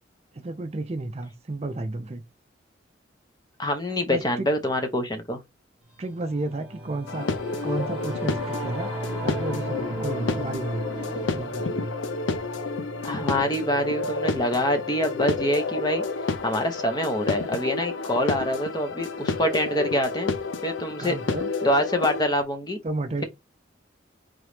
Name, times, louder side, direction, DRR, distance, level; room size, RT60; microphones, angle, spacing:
voice 1, 0.3-2.2 4.1-4.5 6.0-7.3 7.6-8.9 9.2-10.9 11.3-11.9 21.0-21.5 22.8-23.2, right 2 dB, 35° right, 0.4 m, -32 dB
voice 2, 3.6-5.4 13.0-16.0 16.4-20.3 20.6-21.2 21.6-22.8, equal, 20° left, 0.7 m, -25 dB
Singing / Musical instrument, 6.0-15.7, right 1 dB, 5° right, 1.1 m, -37 dB
sound 1, 7.1-22.2, left 3 dB, 85° left, 0.5 m, -30 dB
3.8 x 3.1 x 3.2 m
head